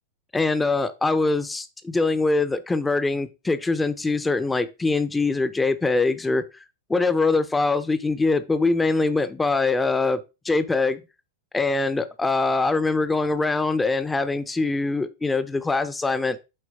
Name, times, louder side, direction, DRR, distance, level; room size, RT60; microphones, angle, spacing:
voice 1, 0.3-6.4 6.9-11.0 11.5-16.4, left 3 dB, 10° left, 0.5 m, -23 dB
7.8 x 4.3 x 2.8 m
figure-of-eight pair, 90°, 0 cm